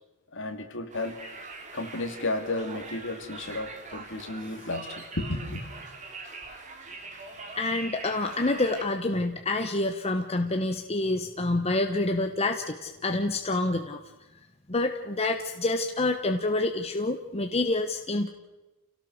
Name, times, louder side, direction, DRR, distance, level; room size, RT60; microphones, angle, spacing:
voice 1, 0.3-1.2 1.7-5.6, left 2 dB, 60° left, 5 dB, 2.8 m, -33 dB
Conversation, 0.9-8.8, right 3 dB, 35° right, 3.2 m, -43 dB
voice 2, 7.6-14.0 14.7-18.3, left 2 dB, 30° left, 5 dB, 1.1 m, -27 dB
28.5 x 17.5 x 6.5 m, 1.1 s
head